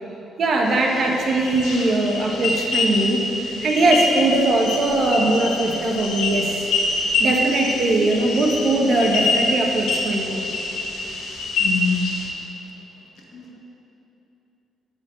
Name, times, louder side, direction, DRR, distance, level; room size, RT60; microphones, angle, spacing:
voice 1, 0.4-6.7 7.2-10.4, right 2 dB, 55° right, 0 dB, 1.3 m, -20 dB
sound 1, 0.6-12.2, left 2 dB, 90° left, 1.4 m, -25 dB
voice 2, 11.6-12.0 13.3-13.6, left 5 dB, 70° left, -2 dB, 1.8 m, -24 dB
7.8 x 5.6 x 7.6 m, 3.0 s
cardioid pair, 90°, 0 cm